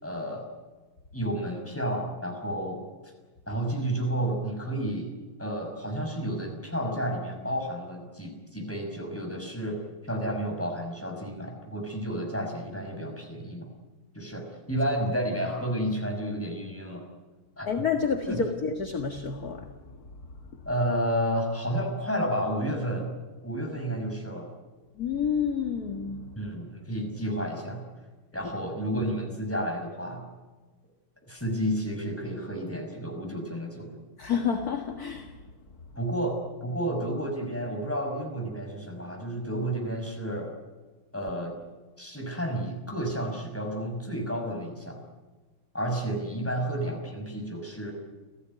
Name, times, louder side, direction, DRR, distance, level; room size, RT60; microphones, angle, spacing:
voice 1, 0.0-0.5 1.1-2.8 3.5-5.1 5.4-9.8 10.0-13.7 14.1-17.1 17.6-17.7 18.3-18.4 20.7-23.1 23.4-24.5 26.4-27.8 28.3-30.3 31.3-33.9 36.0-40.5 41.1-41.5 42.0-45.0 45.7-47.9, right 1 dB, 5° left, 2 dB, 5.7 m, -31 dB
voice 2, 17.7-19.7 25.0-26.2 34.2-35.3, left 6 dB, 45° left, 5 dB, 2.0 m, -29 dB
29.0 x 16.5 x 9.5 m, 1.3 s
omnidirectional pair, 2.3 m